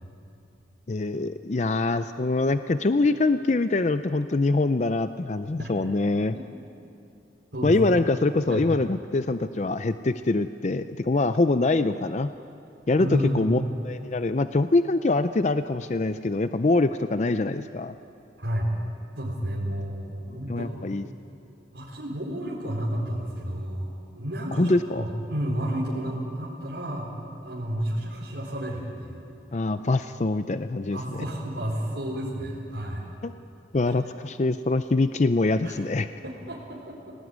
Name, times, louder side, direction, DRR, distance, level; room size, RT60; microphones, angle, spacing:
voice 1, 0.9-6.4 7.6-12.3 12.9-17.9 20.5-21.0 24.6-25.0 29.5-31.2 33.2-33.3 33.7-36.1, left 2 dB, 40° left, 11 dB, 0.5 m, -24 dB
voice 2, 13.0-13.6 18.4-18.7 19.2-20.8 21.7-27.1 27.4-29.2 30.8-33.1 33.9-34.0 35.6-35.8 36.2-37.1, equal, 90° right, -6 dB, 4.3 m, -31 dB
23.5 x 19.0 x 9.5 m, 2.7 s
head